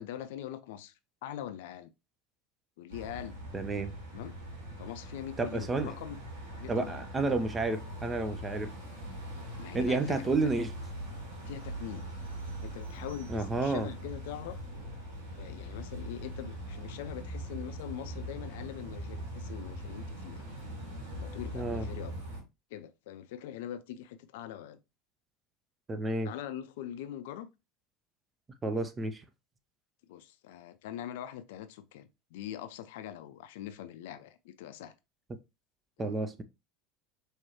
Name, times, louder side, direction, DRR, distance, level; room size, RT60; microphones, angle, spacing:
voice 1, 0.0-1.9 2.8-3.4 4.1-4.4 4.8-6.2 6.6-7.4 9.6-10.3 11.5-12.0 12.6-14.6 15.4-20.4 21.2-22.1 22.7-24.8 26.2-27.5 30.1-34.9 36.0-36.2, left 11 dB, 65° left, 0.4 m, -43 dB
sound 1, 2.9-22.4, equal, 75° right, 1.9 m, -41 dB
voice 2, 3.5-3.9 5.4-5.9 6.7-8.7 9.7-10.7 13.3-13.9 21.5-21.9 25.9-26.3 28.6-29.2 36.0-36.4, right 3 dB, 20° right, 0.6 m, -30 dB
4.4 x 3.2 x 2.9 m
figure-of-eight pair, 75°, 0 cm